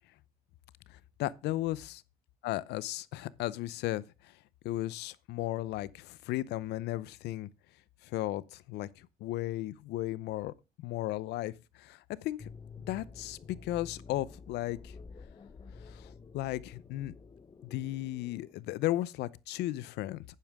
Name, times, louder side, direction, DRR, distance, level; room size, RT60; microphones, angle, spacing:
voice 1, 0.9-2.0 2.4-4.4 4.6-7.5 8.0-12.5 12.8-15.0 15.8-17.1 17.6-20.2, left 15 dB, 80° left, 0.7 m, -35 dB
sound 1, 12.4-18.5, left 4 dB, 25° left, 0.9 m, -50 dB
11.0 x 10.0 x 3.5 m
cardioid pair, 110°, 17 cm